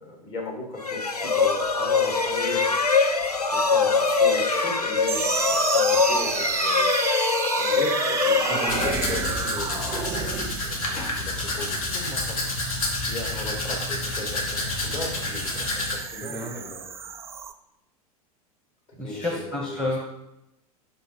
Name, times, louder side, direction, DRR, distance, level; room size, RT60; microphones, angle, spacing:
voice 1, 0.0-2.9 3.5-7.0 7.5-12.4 13.1-16.9 19.0-19.9, left 2 dB, 35° left, -1 dB, 2.3 m, -36 dB
sound 1, 0.8-9.6, left 4 dB, 85° left, 0.6 m, -23 dB
sound 2, 5.1-17.5, right 7 dB, 15° right, 0.3 m, -32 dB
Domestic sounds home sounds, 8.7-16.0, left 2 dB, 65° left, 1.6 m, -29 dB
voice 2, 16.2-16.6 19.0-20.0, left 1 dB, 5° left, -1 dB, 1.0 m, -30 dB
5.4 x 5.3 x 4.4 m, 0.89 s
figure-of-eight pair, 85°, 19 cm